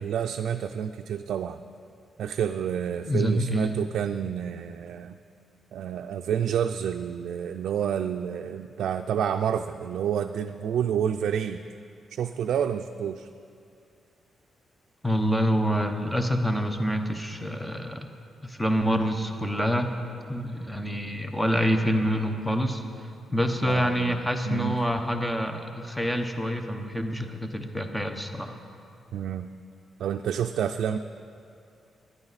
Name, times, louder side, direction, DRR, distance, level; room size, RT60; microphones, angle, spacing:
voice 1, 0.0-1.6 2.2-5.2 5.7-11.6 12.1-13.3 23.6-24.2 24.5-24.8 29.1-29.5 30.0-31.0, right 8 dB, 80° right, 6 dB, 0.4 m, -29 dB
voice 2, 3.1-3.8 15.0-18.1 18.4-19.9 20.3-22.8 23.3-28.6, equal, 5° left, 6 dB, 0.8 m, -26 dB
18.5 x 11.0 x 4.1 m, 2.5 s
wide cardioid pair, 150°, 0 cm